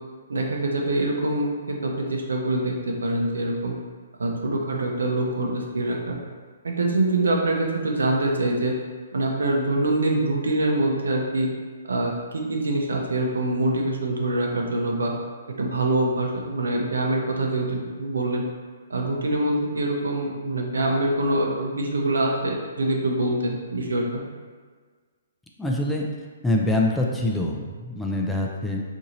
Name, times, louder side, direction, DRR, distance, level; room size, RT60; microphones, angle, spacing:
voice 1, 0.3-3.7 4.2-6.2 6.6-8.7 9.1-11.5 11.9-15.1 15.6-18.4 18.9-24.2, right 2 dB, 90° right, 0 dB, 0.6 m, -24 dB
voice 2, 25.6-26.0 26.4-28.8, left 1 dB, 5° left, -2 dB, 0.4 m, -24 dB
2.9 x 2.6 x 3.8 m, 1.5 s
hypercardioid pair, 145°, 0 cm